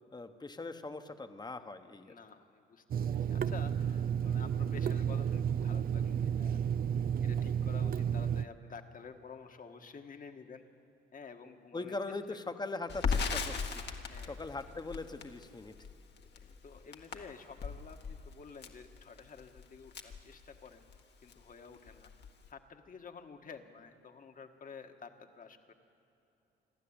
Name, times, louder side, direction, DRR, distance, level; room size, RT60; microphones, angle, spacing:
voice 1, 0.1-2.1 11.7-13.8 14.2-15.7, left 3 dB, 20° left, 8 dB, 1.2 m, -41 dB
voice 2, 2.0-6.6 7.2-10.6 11.1-11.9 12.3-12.4 14.0-14.5 16.2-20.8 21.2-22.1 22.5-25.7, left 5 dB, 45° left, 6 dB, 1.6 m, -51 dB
Water tap faucet / Sink (filling or washing), 2.9-8.4, right 8 dB, 50° right, 0.5 m, -32 dB
Crackle, 12.9-21.0 21.3-21.4 21.7-22.5, left 5 dB, 60° left, 1.7 m, -38 dB
27.0 x 12.0 x 8.8 m, 2.9 s
cardioid pair, 90°, 20 cm